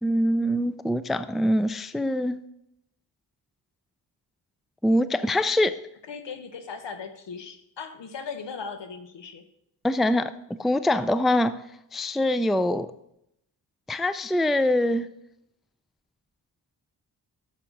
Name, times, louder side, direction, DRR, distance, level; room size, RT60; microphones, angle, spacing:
voice 1, 0.0-2.4 4.8-5.8 9.8-10.3 10.6-11.5 11.9-12.9 13.9-15.1, left 1 dB, ahead, 13 dB, 0.4 m, -23 dB
voice 2, 6.1-9.4, left 5 dB, 70° left, 8 dB, 1.3 m, -38 dB
11.0 x 7.2 x 4.0 m, 0.79 s
cardioid pair, 55°, 45 cm